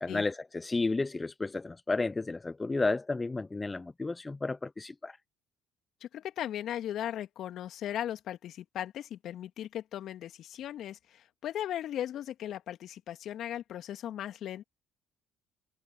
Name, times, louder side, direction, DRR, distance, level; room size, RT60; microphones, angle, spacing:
voice 1, 0.0-5.2, left 3 dB, 20° left, 0.7 m, -32 dB
voice 2, 6.0-14.6, left 11 dB, 60° left, 2.3 m, -37 dB
hypercardioid pair, 55°, 0 cm